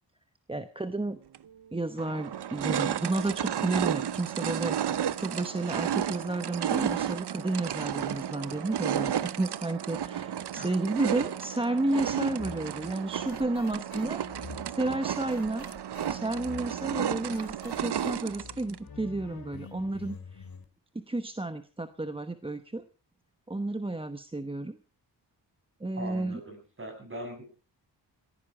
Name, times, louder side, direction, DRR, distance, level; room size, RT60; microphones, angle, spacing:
voice 1, 0.5-1.2 1.7-15.7 16.1-20.4 20.9-22.8 23.5-24.8 25.8-26.4, right 2 dB, 10° right, 10 dB, 0.9 m, -32 dB
sound 1, 1.3-1.4 2.0-18.8, right 9 dB, 65° right, 0.8 m, -32 dB
sound 2, 12.4-20.7, left 5 dB, 55° left, 2.4 m, -47 dB
voice 2, 26.0-27.5, right 1 dB, 30° right, 4 dB, 7.3 m, -40 dB
17.5 x 15.0 x 4.8 m, 0.36 s
wide cardioid pair, 110°, 43 cm